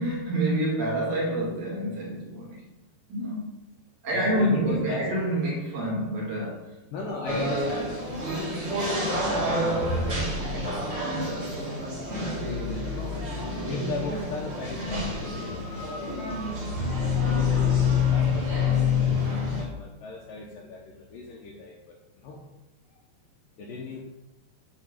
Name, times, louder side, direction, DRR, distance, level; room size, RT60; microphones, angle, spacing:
voice 1, 0.0-2.7 3.1-3.5 4.0-6.8 7.3-7.5, right 1 dB, 55° right, -4 dB, 3.1 m, -27 dB
voice 2, 4.1-5.0 6.9-13.2 13.7-16.7 17.1-22.5 22.9-23.0 23.6-24.0, left 3 dB, 75° left, -1 dB, 2.2 m, -38 dB
sound 1, 7.3-19.6, left 4 dB, 30° right, 1.2 m, -27 dB
9.0 x 4.8 x 6.4 m, 0.98 s
omnidirectional pair, 4.9 m